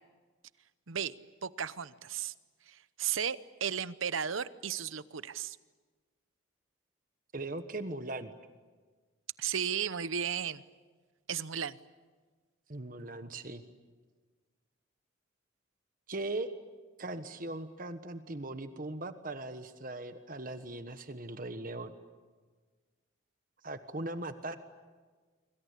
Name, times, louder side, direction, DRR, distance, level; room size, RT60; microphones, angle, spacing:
voice 1, 1.4-2.3 2.7-5.6 9.4-10.6 11.3-11.8, right 8 dB, 80° right, 15 dB, 0.9 m, -34 dB
voice 2, 7.3-8.3 12.7-13.6 16.1-16.5 17.0-21.9 23.6-24.6, right 2 dB, 45° right, 9 dB, 1.3 m, -39 dB
27.0 x 25.0 x 8.4 m, 1.4 s
head